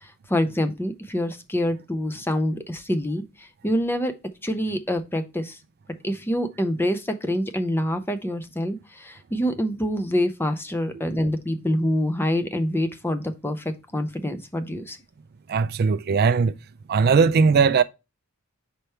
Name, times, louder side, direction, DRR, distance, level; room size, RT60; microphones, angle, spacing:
voice 1, 0.0-4.1 4.4-5.6 6.0-15.0, left 1 dB, 10° left, 0.6 m, -26 dB
voice 2, 15.5-16.5 16.9-17.8, right 5 dB, 45° right, 0.3 m, -19 dB
5.2 x 4.5 x 4.3 m
head